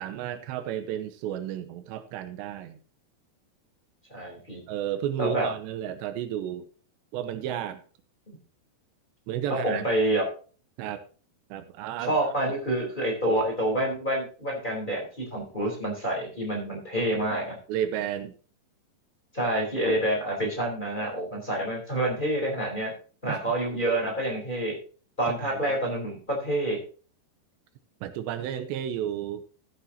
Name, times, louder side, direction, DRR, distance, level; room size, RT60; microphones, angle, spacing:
voice 1, 0.0-2.8 4.7-6.7 7.1-7.8 9.3-9.9 10.8-11.0 11.5-12.1 17.7-18.3 23.3-23.6 25.3-25.6 28.0-29.5, right 10 dB, 85° right, 10 dB, 2.9 m, -32 dB
voice 2, 4.1-4.6 5.2-5.5 8.3-8.4 9.5-10.2 12.0-17.6 19.3-22.9 23.2-24.8 25.2-26.8, right 1 dB, 10° left, -2 dB, 3.6 m, -27 dB
14.0 x 9.8 x 2.9 m, 0.38 s
omnidirectional pair, 5.1 m